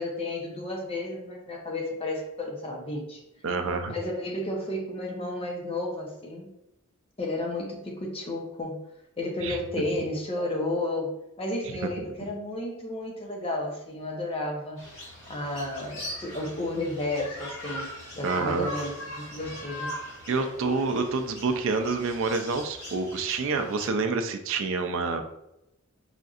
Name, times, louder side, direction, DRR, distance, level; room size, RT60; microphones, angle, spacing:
voice 1, 0.0-3.2 3.9-6.5 7.2-8.8 9.2-11.1 11.4-14.8 15.3-19.9, left 1 dB, 25° left, 0 dB, 0.7 m, -32 dB
voice 2, 3.4-3.9 9.4-9.9 12.0-12.1 18.2-18.7 20.3-25.3, right 4 dB, 65° right, 7 dB, 0.4 m, -28 dB
sound 1, 14.8-23.9, equal, 70° left, 1.4 m, -40 dB
4.9 x 2.6 x 2.4 m, 0.85 s
head